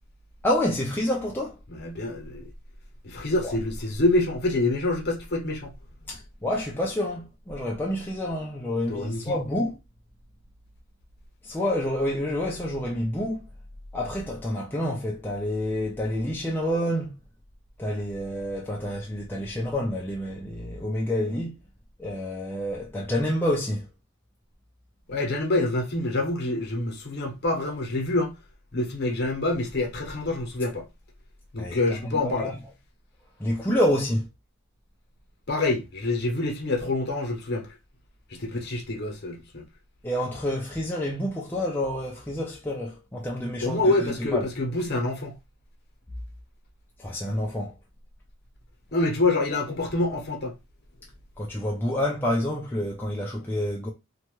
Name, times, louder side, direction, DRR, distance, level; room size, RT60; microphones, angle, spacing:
voice 1, 0.4-1.6 3.4-3.6 6.1-9.8 11.4-13.4 13.9-17.1 17.8-21.6 22.0-23.9 31.6-32.6 33.4-34.3 40.0-44.5 47.0-47.7 51.4-53.9, left 1 dB, 10° left, 0.3 m, -28 dB
voice 2, 1.7-2.4 3.0-5.7 8.9-9.4 25.1-28.3 28.7-30.8 31.5-32.5 35.5-37.7 38.3-39.6 43.6-45.3 48.9-50.5, left 2 dB, 50° left, 0.8 m, -26 dB
2.8 x 2.2 x 3.0 m
head